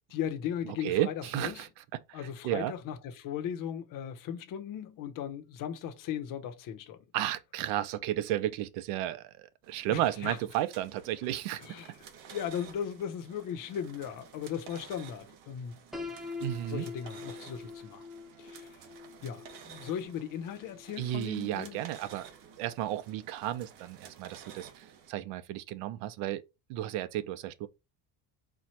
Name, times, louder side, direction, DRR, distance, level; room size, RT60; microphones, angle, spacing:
voice 1, 0.1-1.7 2.1-7.0 9.9-10.4 11.6-11.9 12.3-15.8 16.6-18.1 18.4-18.8 19.2-21.8, left 9 dB, 40° left, 0.7 m, -37 dB
voice 2, 0.8-1.7 2.1-2.2 2.4-2.7 7.1-11.6 16.4-16.9 21.0-22.3 22.6-26.4 26.7-27.7, right 13 dB, 70° right, 0.7 m, -33 dB
sound 1, 9.6-25.1, right 7 dB, 50° right, 1.0 m, -52 dB
Piano, 15.9-21.8, left 4 dB, ahead, 0.5 m, -45 dB
4.4 x 2.2 x 4.3 m
cardioid pair, 145°, 50 cm